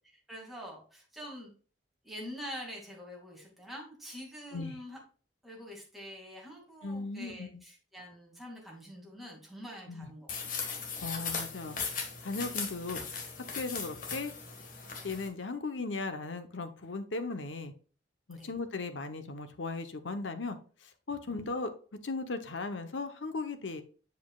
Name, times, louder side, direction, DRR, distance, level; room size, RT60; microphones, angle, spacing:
voice 1, 0.1-1.5 2.0-5.0 5.4-10.6 18.3-18.5 21.3-21.4, equal, ahead, -3 dB, 2.4 m, -45 dB
voice 2, 6.8-7.6 9.9-10.1 11.0-11.8 12.2-13.0 13.6-14.3 15.0-17.7 18.3-21.7 22.0-23.8, left 3 dB, 85° left, 8 dB, 1.0 m, -37 dB
sound 1, 10.3-15.3, left 5 dB, 45° left, 1.5 m, -38 dB
7.4 x 7.0 x 2.4 m, 0.39 s
head